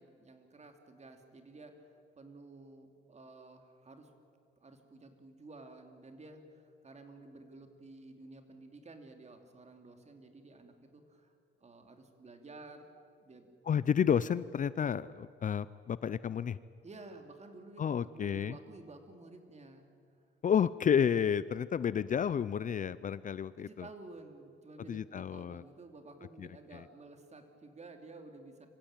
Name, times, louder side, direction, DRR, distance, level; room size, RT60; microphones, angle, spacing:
voice 1, 0.0-4.1 4.6-11.3 11.6-12.9 13.2-13.5 16.8-19.9 23.6-28.7, right 2 dB, 35° right, 6 dB, 2.9 m, -52 dB
voice 2, 13.7-16.6 17.8-18.6 20.4-23.9 24.9-25.6 26.4-26.8, left 8 dB, 40° left, 17 dB, 0.5 m, -31 dB
25.5 x 15.5 x 9.0 m, 2.3 s
cardioid pair, 90°, 20 cm